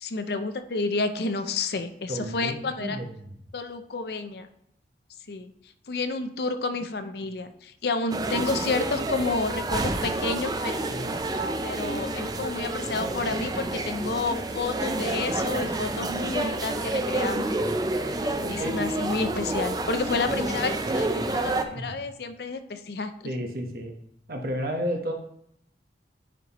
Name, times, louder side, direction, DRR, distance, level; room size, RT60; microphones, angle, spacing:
voice 1, 0.0-3.0 3.5-4.5 5.3-5.5 5.9-11.0 11.6-17.7 18.5-23.3, left 3 dB, 60° left, 9 dB, 0.5 m, -30 dB
voice 2, 2.1-3.1 10.9-11.2 18.4-18.8 21.7-21.9 23.2-23.9 24.3-25.1, equal, 55° right, 2 dB, 1.1 m, -32 dB
sound 1, 8.1-21.6, right 2 dB, 20° right, 0.4 m, -29 dB
10.5 x 4.4 x 3.0 m, 0.73 s
head